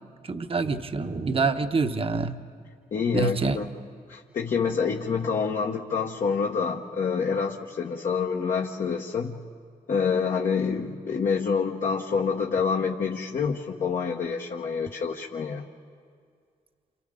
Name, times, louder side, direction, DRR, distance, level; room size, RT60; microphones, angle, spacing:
voice 1, 0.3-2.4 3.1-3.6, right 4 dB, 40° right, 8 dB, 1.0 m, -26 dB
voice 2, 2.9-3.7 4.1-9.4 9.9-15.7, left 5 dB, 60° left, -1 dB, 1.3 m, -27 dB
28.5 x 27.5 x 3.8 m, 2.2 s
cardioid pair, 55°, 15 cm